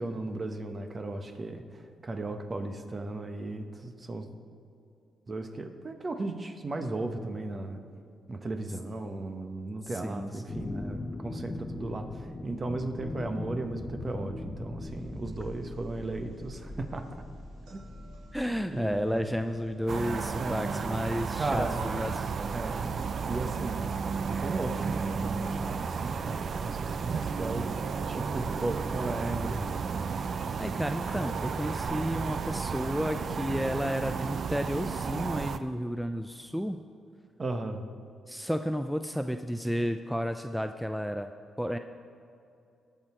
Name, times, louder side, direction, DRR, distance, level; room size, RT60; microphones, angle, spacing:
voice 1, 0.0-4.3 5.3-7.8 8.3-17.0 17.7-17.8 18.7-19.3 20.4-20.8 21.4-22.0 22.5-23.9 24.3-27.8 28.0-29.7 37.4-37.8, right 2 dB, 40° right, 6 dB, 1.1 m, -36 dB
voice 2, 9.8-10.7 18.3-22.3 30.6-36.8 38.3-41.3 41.6-41.8, equal, ahead, 8 dB, 0.4 m, -32 dB
sound 1, 10.5-24.1, left 2 dB, 30° left, 0.8 m, -42 dB
sound 2, 14.8-31.9, right 3 dB, 85° right, 2.6 m, -56 dB
sound 3, 19.9-35.6, right 5 dB, 55° right, 0.5 m, -33 dB
18.0 x 6.2 x 4.4 m, 2.6 s
supercardioid pair, 55°, 0 cm